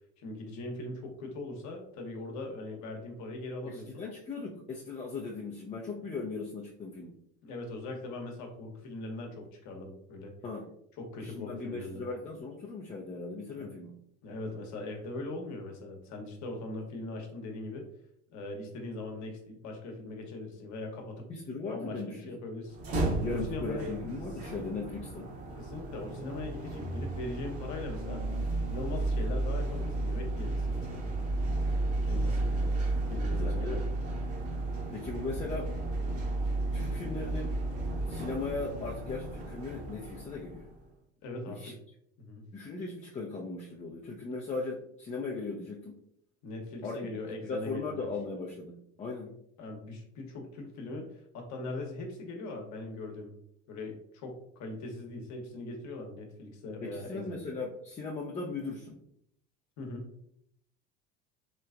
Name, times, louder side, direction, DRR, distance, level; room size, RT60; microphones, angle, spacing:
voice 1, 0.2-4.1 7.4-10.3 11.0-12.0 13.6-13.7 14.2-17.9 18.3-21.3 21.7-22.8 23.2-23.9 25.6-28.2 28.7-31.0 32.0-32.7 33.1-33.9 41.2-41.8 42.2-42.4 46.4-48.1 49.6-51.1 51.3-53.4 53.7-57.4 59.8-60.1, left 2 dB, 50° left, 2 dB, 1.0 m, -40 dB
voice 2, 3.7-7.2 10.4-10.7 11.2-13.9 21.3-22.3 23.2-25.3 33.4-33.9 34.9-35.7 36.7-37.6 38.1-40.7 41.5-41.7 42.5-46.0 46.8-47.0 47.4-49.4 56.8-59.0, left 3 dB, 20° left, -2 dB, 0.5 m, -38 dB
sound 1, 22.7-40.8, right 2 dB, 40° right, 1.0 m, -33 dB
3.1 x 2.9 x 2.4 m, 0.72 s
hypercardioid pair, 75°, 36 cm